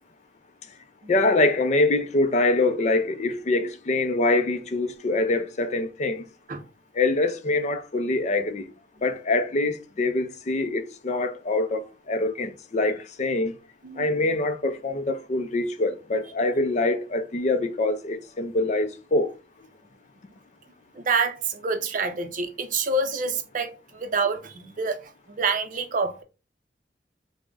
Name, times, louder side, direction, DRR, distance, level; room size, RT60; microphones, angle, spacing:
voice 1, 1.1-6.2 6.9-8.7 9.0-13.5 14.0-19.3, left 2 dB, 40° left, 0.4 m, -24 dB
voice 2, 20.9-26.2, right 4 dB, 45° right, 0.5 m, -27 dB
3.6 x 2.1 x 3.4 m
head